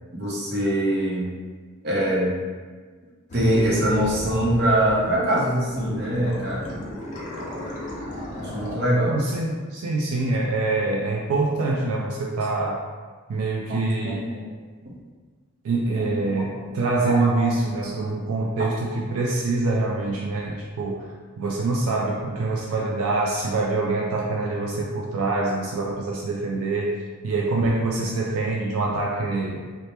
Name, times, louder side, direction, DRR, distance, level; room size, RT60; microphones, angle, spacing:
voice 1, 0.1-1.3 1.8-2.4 3.3-6.7 8.3-9.2 13.7-14.5 16.2-16.7 17.1-17.9, right 1 dB, 45° right, -5 dB, 0.6 m, -24 dB
sound 1, 3.3-5.3 5.7-8.8, equal, 35° left, 0.5 m, -35 dB
voice 2, 9.1-12.8 13.3-14.2 15.6-29.6, right 3 dB, 80° right, -2 dB, 0.3 m, -25 dB
2.8 x 2.0 x 3.2 m, 1.5 s
head